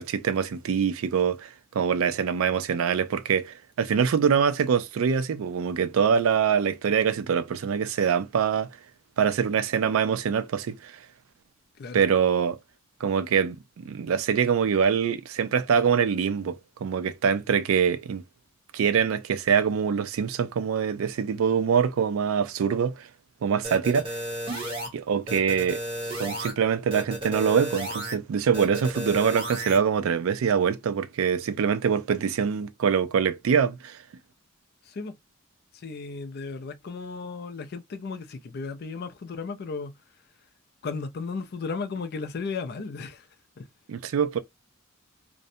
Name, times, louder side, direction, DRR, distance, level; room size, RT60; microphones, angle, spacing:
voice 1, 0.0-1.5 1.7-8.7 9.2-10.9 11.9-12.6 13.0-13.6 13.8-18.2 18.7-23.1 23.4-24.2 24.9-25.8 26.2-34.0 43.9-44.4, right 7 dB, 70° right, 0.3 m, -24 dB
sound 1, 23.6-24.9 25.3-26.5 26.9-28.1 28.5-29.8, right 1 dB, 25° right, 0.9 m, -33 dB
voice 2, 35.7-39.9 40.8-43.3 43.6-43.7, left 4 dB, 45° left, 0.4 m, -35 dB
2.5 x 2.1 x 2.6 m
head